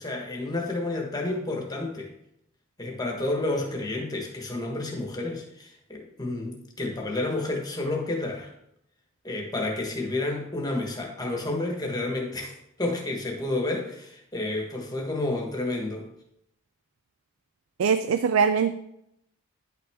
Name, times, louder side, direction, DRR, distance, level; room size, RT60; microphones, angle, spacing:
voice 1, 0.0-2.1 2.8-8.5 9.2-16.1, left 2 dB, 20° left, 1 dB, 1.3 m, -30 dB
voice 2, 17.8-18.7, right 6 dB, 65° right, 11 dB, 0.4 m, -22 dB
9.9 x 5.8 x 3.6 m, 0.78 s
head